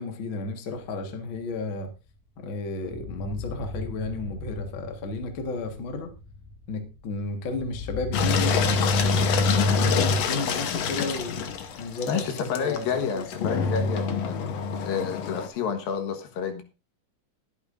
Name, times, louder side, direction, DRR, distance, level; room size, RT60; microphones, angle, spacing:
voice 1, 0.0-1.9 2.4-6.1 6.7-8.8 9.5-11.5 11.8-12.9 13.1-13.7, left 3 dB, 45° left, 1.9 m, -33 dB
sound 1, 0.8-2.5 2.8-13.5, left 2 dB, 5° right, 1.5 m, -42 dB
Engine, 8.1-15.5, left 4 dB, 65° left, 1.8 m, -25 dB
voice 2, 12.1-14.4 14.8-16.6, left 6 dB, 80° left, 3.2 m, -29 dB
20.5 x 8.6 x 2.6 m
omnidirectional pair, 4.0 m